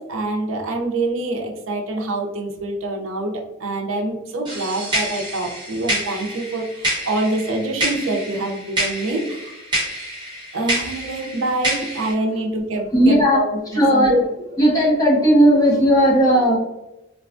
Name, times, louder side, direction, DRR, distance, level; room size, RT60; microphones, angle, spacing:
voice 1, 0.0-3.3 3.6-9.5 10.5-14.2, right 2 dB, 75° right, 2 dB, 0.6 m, -25 dB
sound 1, 4.4-12.1, right 1 dB, 20° right, 1.0 m, -27 dB
voice 2, 12.9-13.4 13.7-14.2 14.6-16.6, equal, 20° left, -4 dB, 0.8 m, -15 dB
3.9 x 2.2 x 2.5 m, 0.95 s
head